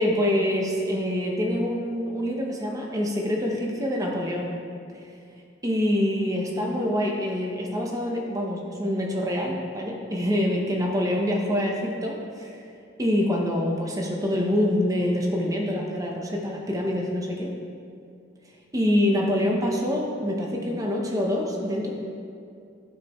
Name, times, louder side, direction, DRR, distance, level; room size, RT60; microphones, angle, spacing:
voice 1, 0.0-4.5 5.6-12.6 13.0-17.5 18.7-21.9, left 1 dB, 15° right, -1 dB, 0.9 m, -25 dB
15.0 x 5.1 x 3.1 m, 2.4 s
head